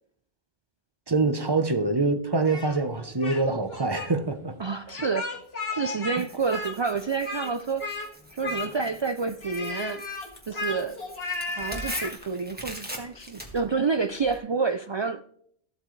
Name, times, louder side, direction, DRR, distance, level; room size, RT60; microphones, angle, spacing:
voice 1, 1.1-4.5, right 3 dB, 25° right, 0.8 m, -25 dB
Speech, 2.4-3.4 3.7-4.1 4.9-6.2 6.5-7.5 7.8-8.1 8.4-9.0 9.4-12.2, left 3 dB, 75° left, 2.0 m, -34 dB
voice 2, 4.6-5.3 5.7-7.9 8.3-10.0 10.5-11.0 11.5-15.2, right 5 dB, 50° right, 0.3 m, -28 dB
Tearing, 6.2-14.4, equal, 10° right, 1.7 m, -42 dB
14.5 x 8.1 x 3.2 m
omnidirectional pair, 1.1 m